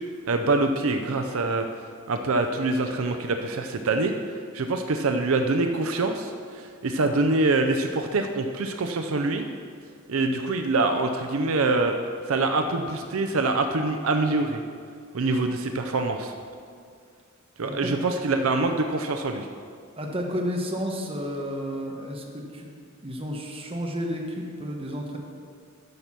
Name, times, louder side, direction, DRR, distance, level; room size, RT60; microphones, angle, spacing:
voice 1, 0.3-1.7 2.1-4.1 4.5-9.5 10.1-11.9 12.3-14.6 15.1-16.3 17.6-19.5, right 3 dB, 70° right, 5 dB, 0.6 m, -25 dB
voice 2, 17.6-18.0 19.9-22.7 23.0-25.2, equal, 25° right, 0 dB, 1.2 m, -31 dB
10.5 x 6.8 x 5.8 m, 2.2 s
head